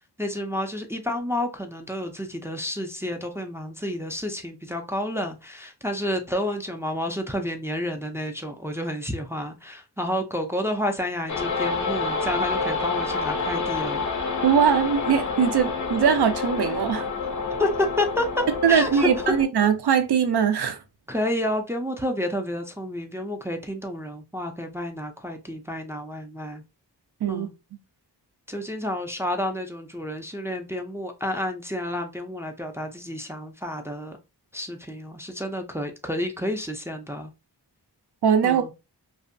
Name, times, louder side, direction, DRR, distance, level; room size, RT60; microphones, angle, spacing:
voice 1, 0.2-14.1 17.6-18.3 18.7-19.1 21.1-26.6 27.3-27.5 28.5-34.2 34.5-37.3 38.4-38.7, left 1 dB, 5° right, 0.3 m, -30 dB
sound 1, 11.3-19.4, left 4 dB, 45° left, 0.5 m, -28 dB
voice 2, 14.4-17.1 18.5-20.8 27.2-27.5 38.2-38.6, right 7 dB, 70° right, 0.5 m, -21 dB
2.6 x 2.1 x 2.5 m
wide cardioid pair, 85°, 41 cm